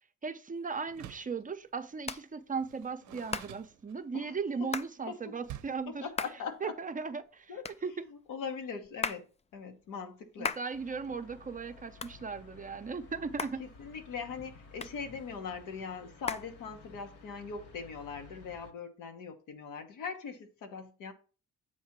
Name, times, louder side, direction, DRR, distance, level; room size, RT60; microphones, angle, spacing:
voice 1, 0.2-6.1 6.6-8.0 10.4-13.6, right 5 dB, 25° right, 0.6 m, -37 dB
Hands, 0.6-17.2, left 5 dB, 20° left, 0.4 m, -43 dB
Door, 0.9-1.4 2.6-4.3 5.4-5.9, right 12 dB, 70° right, 0.6 m, -48 dB
voice 2, 6.0-6.7 7.5-7.6 8.0-9.2 9.5-10.6 13.6-21.1, left 5 dB, 85° left, 1.3 m, -41 dB
sound 1, 10.7-18.7, left 4 dB, 50° left, 1.3 m, -54 dB
8.1 x 2.8 x 5.9 m
cardioid pair, 90°, 30 cm